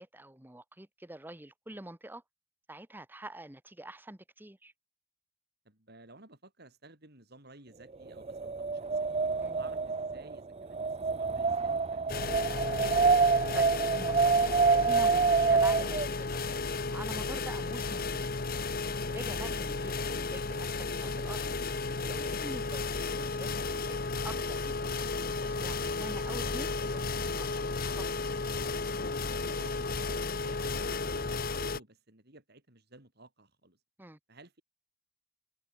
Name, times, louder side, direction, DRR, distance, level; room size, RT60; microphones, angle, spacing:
voice 1, 0.0-2.2 2.7-4.7 9.4-9.6 12.8-16.6 16.9-18.3 18.9-21.5 22.0-28.0 34.0-34.2, right 1 dB, 10° right, 1.0 m, -46 dB
voice 2, 5.6-9.2 9.6-12.2 29.3-33.8 34.3-34.6, right 2 dB, 50° right, 4.5 m, -55 dB
Wind, 8.1-16.1, right 4 dB, 30° right, 0.5 m, -27 dB
sound 1, 12.1-31.8, left 3 dB, 45° left, 1.2 m, -34 dB
head